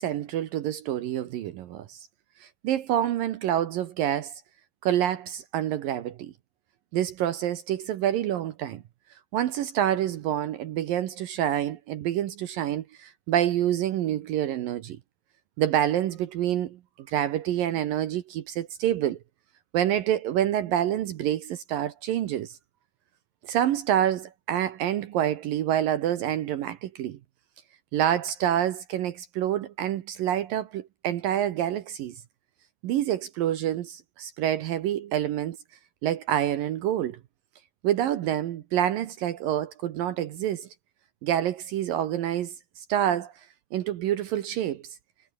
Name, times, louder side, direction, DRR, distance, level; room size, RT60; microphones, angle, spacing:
voice 1, 0.0-2.0 2.4-4.3 4.8-6.3 6.9-8.8 9.3-15.0 15.6-19.2 19.7-22.6 23.4-27.2 27.9-32.2 32.8-35.6 36.0-37.2 37.8-40.7 41.2-43.3 43.7-44.8, right 11 dB, 70° right, 2.1 m, -27 dB
omnidirectional pair, 5.5 m